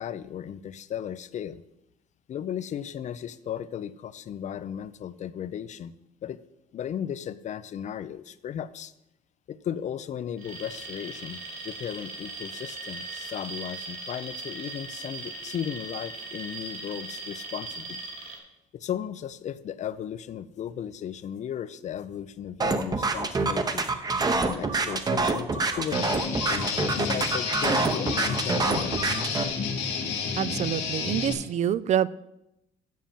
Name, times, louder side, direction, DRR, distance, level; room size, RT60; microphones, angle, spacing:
voice 1, 0.0-1.6 2.3-5.9 6.2-6.4 6.7-8.9 9.5-18.0 18.7-23.9 24.4-26.2 26.5-29.0, left 9 dB, 45° left, 16 dB, 0.5 m, -35 dB
Alarm, 10.4-18.4, right 3 dB, 60° right, 2.6 m, -39 dB
sound 1, 22.6-29.4, right 3 dB, 25° right, 0.8 m, -26 dB
Guitar, 25.9-31.3, left 5 dB, 90° left, 1.6 m, -30 dB
voice 2, 30.4-32.1, right 10 dB, 45° right, 19 dB, 0.4 m, -26 dB
7.4 x 5.6 x 7.3 m, 0.87 s
cardioid pair, 110°, 17 cm